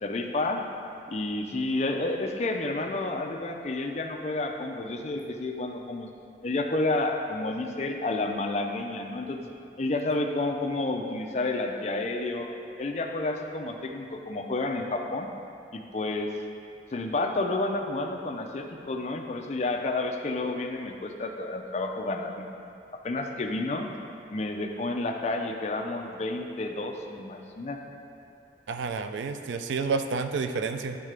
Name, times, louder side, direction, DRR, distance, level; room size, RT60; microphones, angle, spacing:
voice 1, 0.0-0.6 1.1-6.1 6.4-9.4 9.8-12.5 12.8-15.3 15.7-16.3 16.9-22.5 22.9-23.9 24.3-27.8, left 2 dB, 35° left, 3 dB, 0.4 m, -30 dB
voice 2, 28.7-31.0, right 4 dB, 85° right, 8 dB, 0.4 m, -30 dB
10.5 x 3.6 x 3.3 m, 2.6 s
head